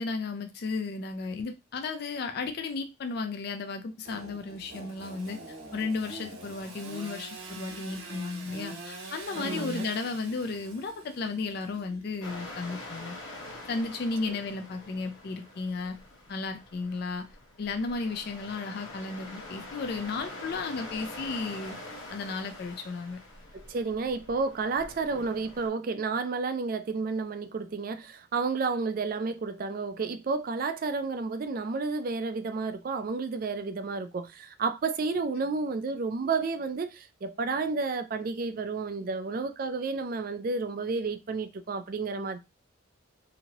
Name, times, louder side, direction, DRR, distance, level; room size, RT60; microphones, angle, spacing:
voice 1, 0.0-5.4 5.7-13.1 13.7-16.0 16.3-17.3 17.6-21.8 22.1-23.2, left 4 dB, 50° left, 0.3 m, -34 dB
Engine / Sawing, 4.0-12.3, right 2 dB, 80° right, 0.9 m, -44 dB
voice 2, 9.4-9.9 14.3-14.4 23.5-42.4, right 4 dB, 40° right, 0.3 m, -31 dB
sound 1, 12.2-25.7, left 1 dB, 75° left, 1.0 m, -45 dB
2.8 x 2.7 x 2.8 m
head